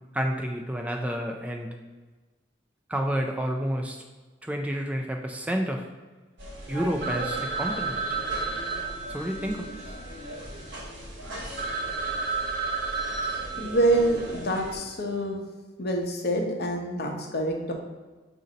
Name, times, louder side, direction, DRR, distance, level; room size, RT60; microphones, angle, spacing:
voice 1, 0.1-1.7 2.9-4.0 4.4-5.8 6.7-8.2 9.1-9.9, equal, 10° right, 2 dB, 0.3 m, -30 dB
sound 1, 6.4-14.8, equal, 85° right, 1.0 m, -40 dB
Telephone, 7.0-10.8 11.3-11.4 11.6-14.4, right 4 dB, 60° right, 0.7 m, -32 dB
voice 2, 13.6-15.4 15.8-17.7, right 1 dB, 60° left, 1 dB, 0.8 m, -26 dB
5.2 x 2.6 x 3.9 m, 1.3 s
head